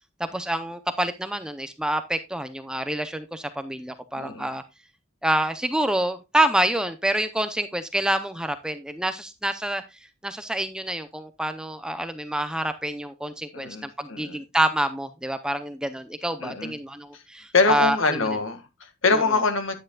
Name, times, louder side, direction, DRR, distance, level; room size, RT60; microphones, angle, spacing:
voice 1, 0.2-4.6 5.2-9.8 10.2-13.7 14.0-18.3 19.1-19.2, right 1 dB, 5° right, 0.5 m, -27 dB
voice 2, 4.2-4.5 13.5-14.4 16.4-16.7 17.1-17.2 17.5-19.7, left 3 dB, 70° left, 1.7 m, -24 dB
9.8 x 9.1 x 2.3 m
head